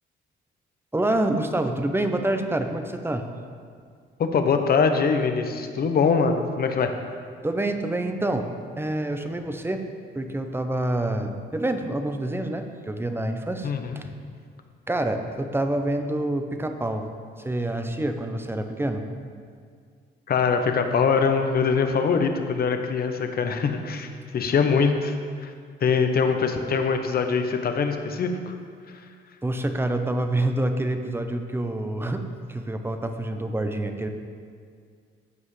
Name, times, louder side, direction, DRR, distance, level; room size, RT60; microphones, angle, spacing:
voice 1, 0.9-3.3 7.4-8.5 8.8-9.8 10.1-14.1 14.9-17.1 17.4-19.1 29.4-34.1, right 1 dB, 10° right, 6 dB, 0.7 m, -27 dB
voice 2, 4.2-6.9 13.6-14.0 20.3-24.1 24.3-25.1 25.4-25.5 25.8-28.5, left 5 dB, 50° left, 6 dB, 0.8 m, -23 dB
14.5 x 5.4 x 3.3 m, 2.1 s
cardioid pair, 90°, 20 cm